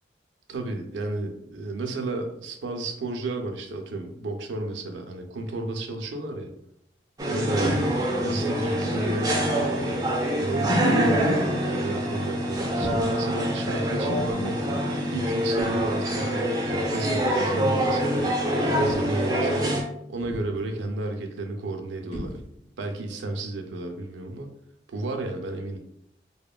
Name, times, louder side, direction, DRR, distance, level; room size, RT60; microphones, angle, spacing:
voice 1, 0.5-6.5 7.2-7.8 8.2-14.6 15.0-18.3 18.8-19.8 20.1-22.4 22.8-24.5 24.9-25.8, right 2 dB, 80° right, 4 dB, 0.4 m, -32 dB
sound 1, 7.2-19.8, equal, 20° right, 0.4 m, -25 dB
sound 2, 12.8-13.3 14.2-14.5 15.6-16.1 17.2-17.4 18.9-19.4 20.2-20.7 22.1-22.8, equal, 35° left, 0.6 m, -39 dB
2.8 x 2.1 x 2.3 m, 0.74 s
head